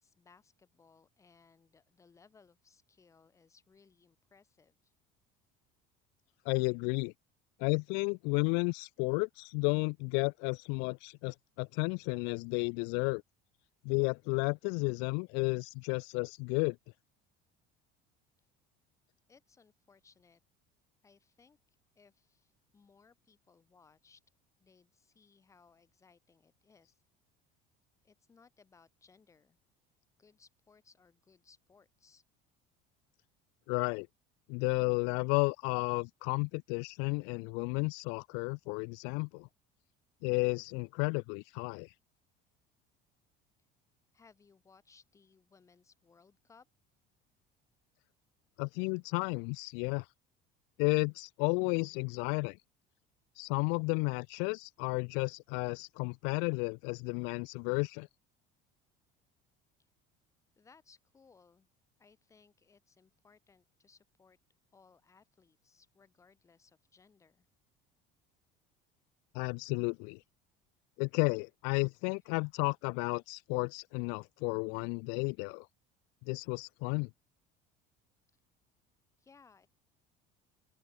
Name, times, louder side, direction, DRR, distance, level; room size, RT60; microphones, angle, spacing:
voice 1, 0.0-4.9 19.3-20.4 21.0-21.6 21.9-24.2 24.6-27.0 28.0-29.6 30.2-32.2 44.1-46.7 60.6-61.7 62.0-64.4 64.7-67.5 79.2-79.7, left 5 dB, 15° left, 4.6 m, -64 dB
voice 2, 6.4-7.1 7.6-13.2 13.8-16.8 33.7-34.1 34.5-39.5 40.2-41.9 48.6-50.1 50.8-52.6 53.4-58.1 69.3-70.2 71.0-75.7 76.3-77.1, left 39 dB, 85° left, 0.6 m, -32 dB
open air
cardioid pair, 170°, 18 cm